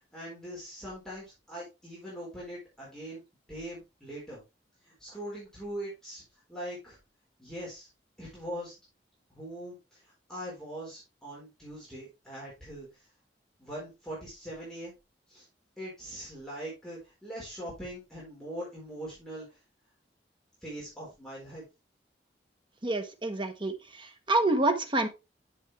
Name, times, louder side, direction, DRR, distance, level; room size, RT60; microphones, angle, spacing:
voice 1, 0.1-3.2 3.5-4.4 4.8-6.2 6.5-7.0 7.4-7.9 8.2-8.8 9.3-13.1 13.6-14.9 15.3-15.5 15.8-19.6 20.6-21.6, equal, 5° left, -7 dB, 4.2 m, -41 dB
voice 2, 22.8-23.7 24.3-25.1, right 2 dB, 30° right, 6 dB, 1.2 m, -27 dB
7.3 x 7.3 x 3.3 m, 0.25 s
head